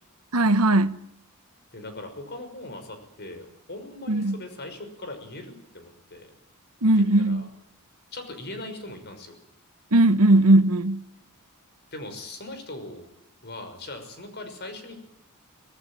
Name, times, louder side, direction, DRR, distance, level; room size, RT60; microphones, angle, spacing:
voice 1, 0.3-1.0 4.1-4.4 6.8-7.4 9.9-11.0, right 2 dB, 80° right, 1.2 m, -19 dB
voice 2, 1.7-6.3 7.0-7.5 8.1-9.3 11.9-13.1 13.4-14.9, left 2 dB, 50° left, 5.9 m, -40 dB
25.0 x 18.0 x 9.2 m
head